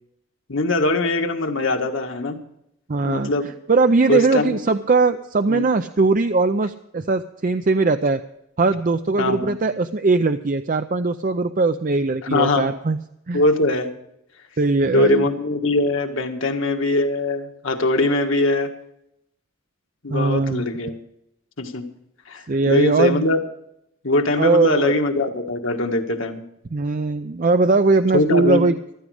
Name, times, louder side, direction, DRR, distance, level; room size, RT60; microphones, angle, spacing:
voice 1, 0.5-2.4 3.0-3.5 4.1-4.6 5.5-5.7 9.2-9.5 12.3-12.7 13.3-13.9 14.8-18.7 20.0-21.0 21.6-21.8 22.3-23.4 24.0-26.4 28.1-28.6, left 2 dB, 70° left, 4 dB, 1.7 m, -21 dB
voice 2, 2.9-3.3 3.7-8.2 8.6-13.0 13.3-13.4 14.6-15.3 20.1-20.6 22.5-23.2 24.4-25.0 26.7-28.8, right 3 dB, 40° right, 9 dB, 0.5 m, -20 dB
15.0 x 14.0 x 4.9 m, 0.79 s
head